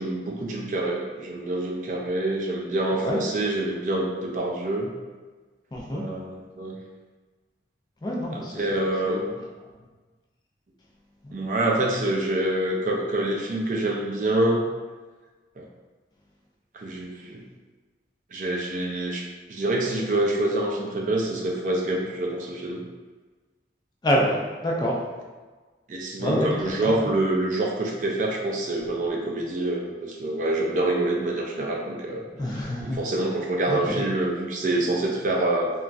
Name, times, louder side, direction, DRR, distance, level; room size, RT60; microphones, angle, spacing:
voice 1, 0.0-4.9 5.9-6.8 8.3-9.2 11.3-14.7 15.6-15.7 16.7-17.4 18.3-22.8 25.9-35.7, right 1 dB, 45° right, -1 dB, 0.4 m, -26 dB
voice 2, 5.7-6.0 8.0-9.4 11.2-11.4 24.0-25.0 26.2-26.5 26.8-27.1 32.4-33.0 33.7-34.0, equal, 25° left, -3 dB, 0.4 m, -27 dB
2.9 x 2.3 x 2.5 m, 1.3 s
head